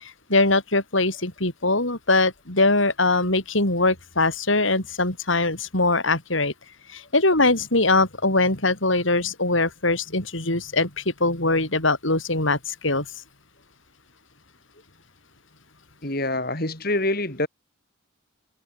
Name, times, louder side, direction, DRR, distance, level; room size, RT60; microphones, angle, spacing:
voice 1, 0.3-6.5 6.9-13.1, left 2 dB, 70° left, 6.1 m, -22 dB
voice 2, 16.0-17.5, left 1 dB, 50° left, 7.9 m, -25 dB
head